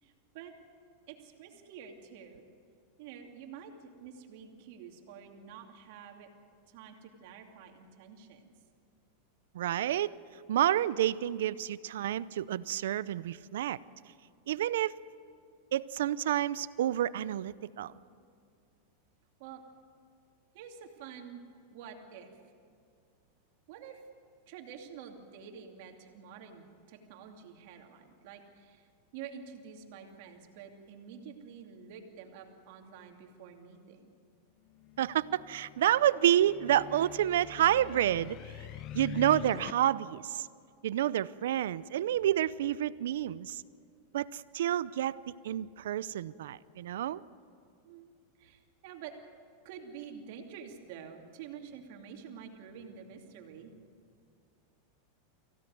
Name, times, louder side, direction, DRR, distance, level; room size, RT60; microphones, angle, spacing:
voice 1, 0.0-0.5 1.1-2.4 3.0-6.3 6.7-8.5 19.4-19.6 20.5-21.4 21.7-22.3 23.7-24.0 24.5-34.1 47.8-48.1 48.4-49.2 49.6-53.7, right 7 dB, 60° right, 3 dB, 2.7 m, -48 dB
voice 2, 9.5-10.1 10.5-13.8 14.5-14.9 15.7-17.9 35.0-38.4 38.9-40.5 40.8-43.6 44.1-47.2, right 12 dB, 80° right, 18 dB, 0.6 m, -29 dB
sound 1, 34.7-39.7, left 13 dB, 35° left, 0.5 m, -45 dB
24.0 x 16.5 x 9.5 m, 2.3 s
supercardioid pair, 145°, 0 cm